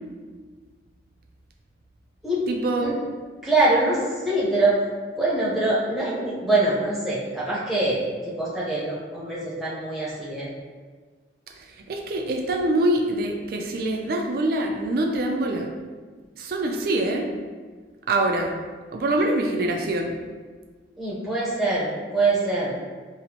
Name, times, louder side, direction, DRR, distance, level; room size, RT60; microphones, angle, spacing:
voice 1, 2.5-2.9 11.6-15.7 16.4-17.3 18.1-18.5 18.9-20.2, right 1 dB, 55° right, 2 dB, 0.3 m, -24 dB
voice 2, 3.4-4.8 5.2-10.5 21.0-22.7, right 2 dB, ahead, -8 dB, 0.7 m, -24 dB
4.2 x 2.0 x 2.8 m, 1.4 s
head